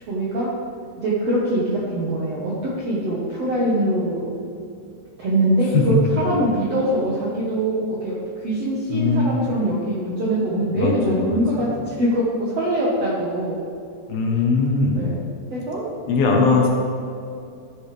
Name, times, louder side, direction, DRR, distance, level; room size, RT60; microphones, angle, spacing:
voice 1, 0.1-0.5 1.0-2.5 2.8-4.3 5.2-8.2 8.4-13.6 14.9-15.2 15.5-15.9, right 1 dB, 65° right, -6 dB, 1.6 m, -23 dB
voice 2, 8.9-9.4 10.7-11.6 14.1-15.0 16.1-16.7, left 4 dB, 70° left, -1 dB, 2.6 m, -20 dB
14.0 x 8.3 x 3.4 m, 2.5 s
omnidirectional pair, 4.9 m